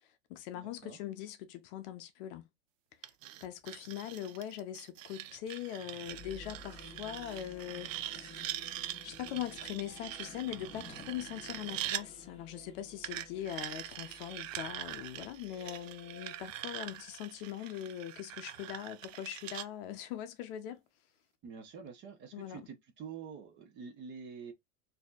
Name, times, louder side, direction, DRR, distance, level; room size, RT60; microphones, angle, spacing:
voice 1, 0.0-2.4 3.4-8.7 9.0-20.8 22.3-22.6, left 11 dB, 45° left, 0.6 m, -42 dB
voice 2, 0.5-1.0 21.4-24.5, right 6 dB, 30° right, 0.8 m, -47 dB
sound 1, 3.0-12.0 13.0-19.7, right 14 dB, 80° right, 0.5 m, -43 dB
sound 2, 6.0-17.8, left 2 dB, 15° left, 1.5 m, -54 dB
4.2 x 2.7 x 2.4 m
supercardioid pair, 155°, 38 cm